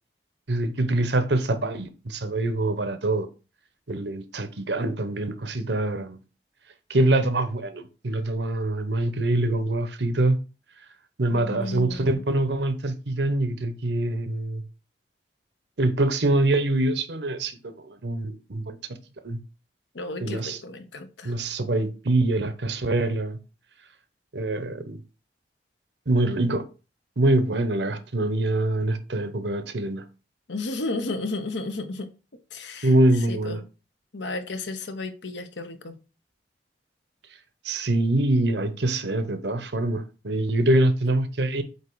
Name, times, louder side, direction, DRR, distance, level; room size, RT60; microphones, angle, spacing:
voice 1, 0.5-3.3 3.9-6.2 6.9-10.4 11.2-14.6 15.8-18.8 19.2-19.4 20.2-20.6 21.2-23.4 24.3-25.0 26.1-26.6 27.2-30.0 32.8-33.6 37.6-41.6, right 2 dB, 75° right, 0.9 m, -24 dB
voice 2, 11.3-12.2 19.9-21.4 30.5-32.1 32.5-32.9 33.3-33.6 34.1-36.0, left 2 dB, 85° left, 1.0 m, -33 dB
8.1 x 2.9 x 4.6 m
head